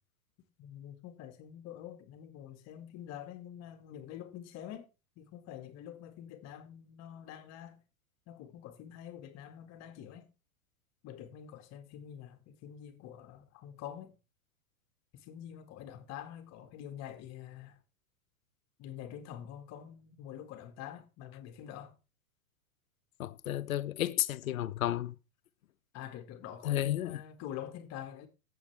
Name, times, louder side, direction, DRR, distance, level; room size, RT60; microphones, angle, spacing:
voice 1, 0.6-4.9 5.2-7.8 8.3-10.3 11.0-14.1 15.1-17.8 18.8-21.9 23.4-23.6 25.9-28.3, left 10 dB, 40° left, 2.0 m, -46 dB
voice 2, 23.2-25.1 26.6-27.2, left 13 dB, 75° left, 1.0 m, -32 dB
13.5 x 8.1 x 3.5 m
hypercardioid pair, 120°, 42 cm